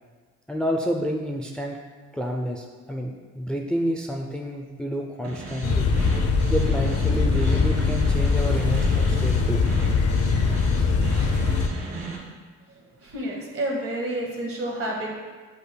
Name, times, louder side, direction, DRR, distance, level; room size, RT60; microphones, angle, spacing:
voice 1, 0.5-1.8 2.1-5.9 6.5-9.6, equal, 5° left, 0 dB, 0.4 m, -29 dB
sound 1, 5.2-12.2, right 3 dB, 65° right, 1.6 m, -36 dB
sound 2, 5.6-11.7, left 4 dB, 50° left, 0.6 m, -22 dB
voice 2, 12.7-15.2, right 1 dB, 45° right, -2 dB, 1.7 m, -30 dB
7.9 x 5.4 x 2.2 m, 1.4 s
cardioid pair, 90°, 30 cm